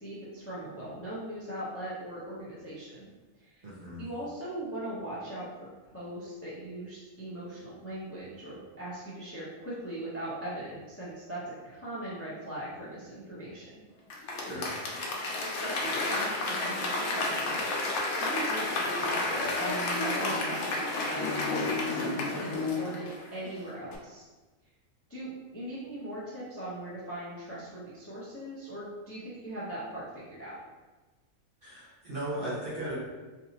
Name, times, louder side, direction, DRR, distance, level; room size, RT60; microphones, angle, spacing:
voice 1, 0.0-3.1 3.4-3.6 4.0-13.8 15.4-17.6 18.1-24.3 25.1-30.5, right 1 dB, 15° left, -8 dB, 0.5 m, -40 dB
voice 2, 3.6-4.0 14.4-14.7 31.6-33.0, right 1 dB, 45° right, -7 dB, 1.0 m, -36 dB
Applause / Crowd, 14.1-23.5 23.9-24.0, left 2 dB, 85° left, 1.1 m, -31 dB
3.4 x 2.7 x 2.7 m, 1.2 s
omnidirectional pair, 1.4 m